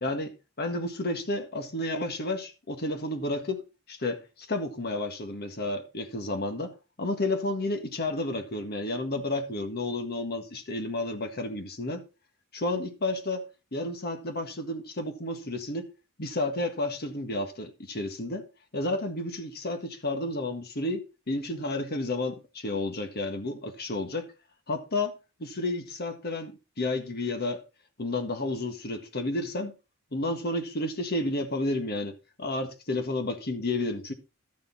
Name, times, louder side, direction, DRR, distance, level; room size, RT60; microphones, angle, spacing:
voice 1, 0.0-4.2 4.5-12.0 12.5-13.5 13.7-15.9 16.2-18.5 18.7-24.3 24.7-27.6 28.0-29.7 30.1-34.1, left 2 dB, 50° left, 1.7 m, -31 dB
12.5 x 6.9 x 4.1 m
head